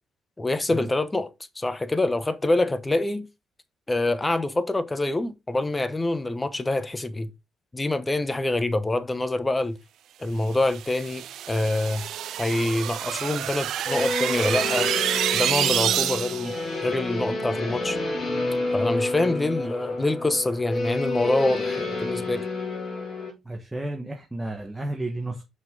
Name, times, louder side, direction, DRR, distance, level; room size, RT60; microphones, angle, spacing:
voice 1, 0.4-1.3 1.6-3.3 3.9-7.3 7.7-9.8 10.2-12.1 12.4-14.9 15.3-16.6 16.8-18.0 18.7-22.5, left 2 dB, 20° left, 0.9 m, -25 dB
sound 1, 10.6-16.6, right 11 dB, 75° right, 0.3 m, -28 dB
sound 2, 13.9-23.3, left 2 dB, 40° left, 3.1 m, -29 dB
voice 2, 23.4-25.4, right 2 dB, 10° right, 1.3 m, -32 dB
5.7 x 5.7 x 3.8 m
cardioid pair, 90°, 0 cm